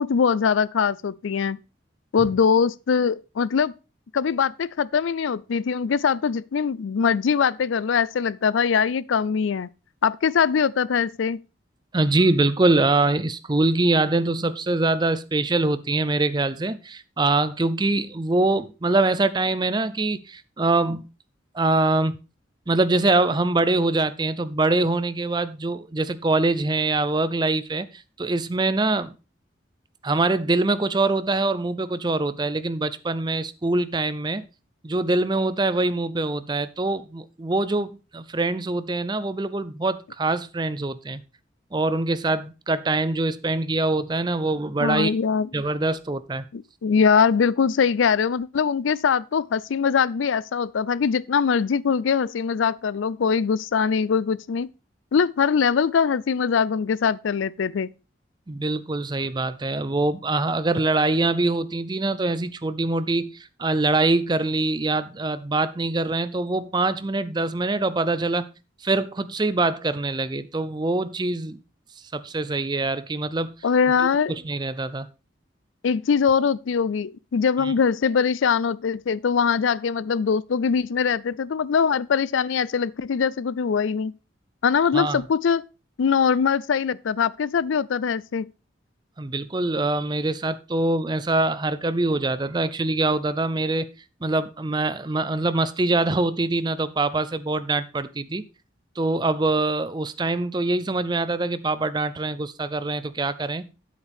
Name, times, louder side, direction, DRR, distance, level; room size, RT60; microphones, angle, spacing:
voice 1, 0.0-1.6 2.1-3.7 4.1-9.7 10.0-11.4 44.8-45.5 46.5-54.7 55.1-57.9 73.6-74.3 75.8-84.1 84.6-85.6 86.0-88.5, left 6 dB, 85° left, 0.4 m, -22 dB
voice 2, 11.9-21.1 21.5-22.2 22.7-29.1 30.0-34.4 34.8-41.2 41.7-45.1 45.5-46.4 58.5-68.5 68.8-71.6 72.1-73.5 74.0-75.1 77.6-77.7 84.9-85.3 89.2-93.9 94.2-98.4 99.0-103.7, right 2 dB, 20° right, 0.5 m, -24 dB
9.9 x 8.2 x 3.5 m
head